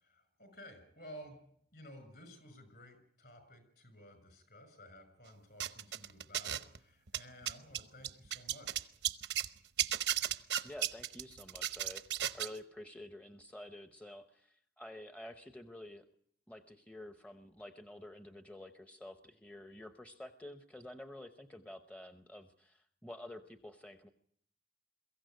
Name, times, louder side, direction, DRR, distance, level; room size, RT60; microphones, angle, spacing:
voice 1, 0.0-1.4 1.7-8.9, equal, 55° left, 10 dB, 6.4 m, -54 dB
sound 1, 5.6-6.8 7.1-9.5 9.8-12.6, right 11 dB, 75° right, 0.9 m, -35 dB
voice 2, 10.6-12.0 12.3-16.0 16.5-24.1, left 1 dB, 5° left, 7 dB, 0.8 m, -50 dB
23.0 x 15.0 x 9.3 m, 0.68 s
head